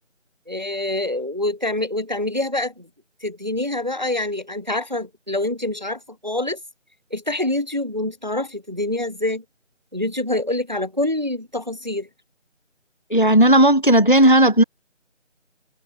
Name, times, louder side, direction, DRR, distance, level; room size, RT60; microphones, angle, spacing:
voice 1, 0.5-2.9 3.2-6.6 7.1-9.4 9.9-12.1, left 1 dB, 35° right, 0.7 m, -26 dB
voice 2, 13.1-14.6, right 1 dB, 45° left, 0.5 m, -14 dB
open air
figure-of-eight pair, 175°, 38 cm